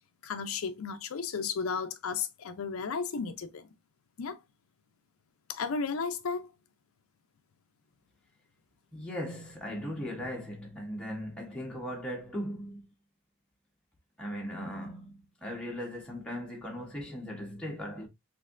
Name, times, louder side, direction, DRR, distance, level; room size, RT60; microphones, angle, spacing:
voice 1, 0.2-3.7 4.2-4.4 5.5-6.5, left 5 dB, 80° left, 0.5 m, -34 dB
voice 2, 8.9-12.8 14.2-18.1, equal, 5° left, 1.0 m, -38 dB
4.2 x 2.6 x 2.5 m
head